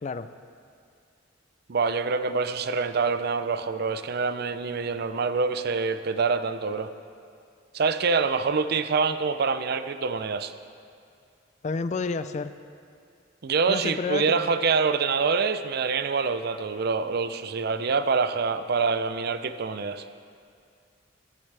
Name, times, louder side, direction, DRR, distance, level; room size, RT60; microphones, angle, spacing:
voice 1, 1.7-6.9 7.7-10.5 13.4-20.0, right 4 dB, 55° right, 11 dB, 0.5 m, -26 dB
voice 2, 11.6-12.5 13.7-14.5, left 4 dB, 40° left, 12 dB, 0.4 m, -30 dB
15.5 x 12.0 x 3.4 m, 2.3 s
head